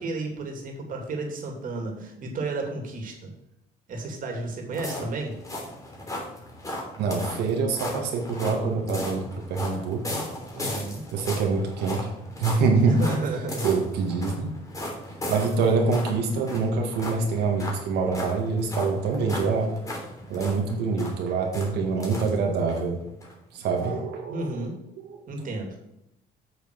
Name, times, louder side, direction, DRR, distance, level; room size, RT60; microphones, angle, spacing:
voice 1, 0.0-3.3 3.9-5.3 10.5-11.0 12.9-13.7 24.3-24.7 25.3-25.8, right 2 dB, 55° right, 2 dB, 2.8 m, -32 dB
sound 1, 4.7-22.8 23.2-23.3 23.8-23.9, left 1 dB, 20° left, 3.1 m, -37 dB
voice 2, 7.0-10.2 11.1-12.1 12.4-13.0 13.6-14.5 15.3-19.7 20.3-23.0 23.5-24.7 25.0-25.2, right 4 dB, 80° right, 2 dB, 1.9 m, -25 dB
8.1 x 6.7 x 6.2 m, 0.84 s
cardioid pair, 110°, 17 cm